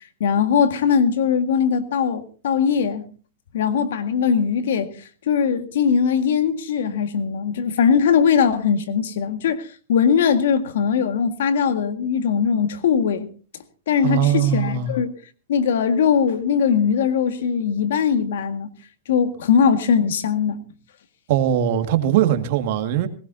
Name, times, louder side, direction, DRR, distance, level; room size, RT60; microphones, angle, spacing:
voice 1, 0.2-3.1 3.5-4.9 5.3-13.3 13.9-15.1 15.5-18.7 19.1-20.6, left 7 dB, 75° left, 1.9 m, -20 dB
voice 2, 14.0-14.9 21.3-23.1, right 10 dB, 55° right, 2.0 m, -20 dB
20.5 x 18.0 x 2.8 m
supercardioid pair, 150°, 0 cm